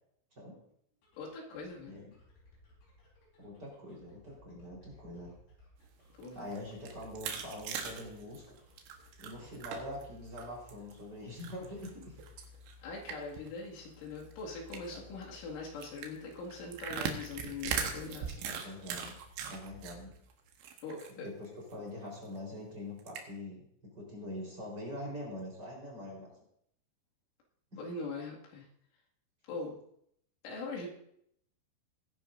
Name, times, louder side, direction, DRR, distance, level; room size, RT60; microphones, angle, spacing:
sound 1, 0.9-20.7, left 4 dB, 55° left, 5.6 m, -59 dB
voice 1, 1.2-2.0 6.2-6.5 12.8-18.5 20.8-21.3 27.8-28.7 29.5-29.8 30.4-30.9, left 3 dB, 90° left, -3 dB, 4.8 m, -42 dB
voice 2, 3.4-5.3 6.3-8.6 9.2-12.2 14.9-15.0 18.4-19.2 19.5-20.2 21.1-23.6 23.9-26.3 27.7-27.8, left 1 dB, 25° right, -3 dB, 4.1 m, -44 dB
sound 2, 6.1-10.0 10.4-10.9 11.4-13.5 13.8-13.9 14.2-14.3 14.7-15.0 15.8-19.9 20.3-21.1 21.4-21.5 21.9-22.0 23.0-23.2, right 7 dB, 75° right, 3.4 m, -39 dB
20.0 x 10.5 x 2.6 m, 0.72 s
omnidirectional pair, 5.5 m